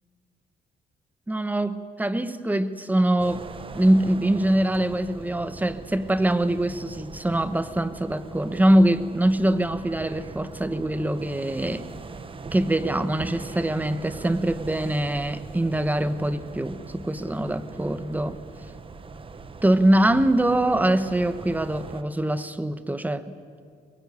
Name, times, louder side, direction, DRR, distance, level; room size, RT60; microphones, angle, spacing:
voice 1, 1.3-3.4 3.7-11.8 12.5-18.4 19.6-23.3, right 1 dB, 10° right, 12 dB, 1.1 m, -23 dB
sound 1, 3.2-22.0, right 4 dB, 30° right, 1.2 m, -41 dB
22.5 x 22.5 x 9.5 m, 2.4 s
cardioid pair, 130°, 17 cm